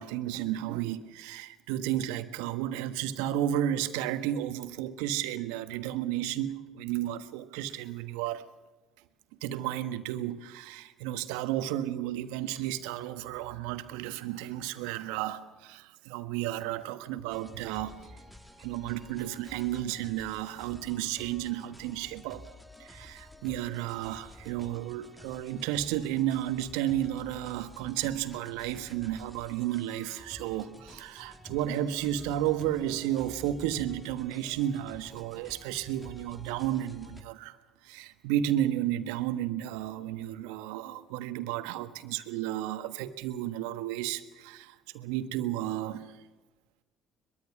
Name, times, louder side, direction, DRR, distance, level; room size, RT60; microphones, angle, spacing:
voice 1, 0.0-8.5 9.4-17.9 18.6-22.5 22.8-37.6 37.8-46.1, right 12 dB, 70° right, 1.4 m, -32 dB
sound 1, 17.3-37.2, left 1 dB, 5° left, 2.0 m, -51 dB
23.0 x 22.5 x 6.1 m
hypercardioid pair, 50°, 0 cm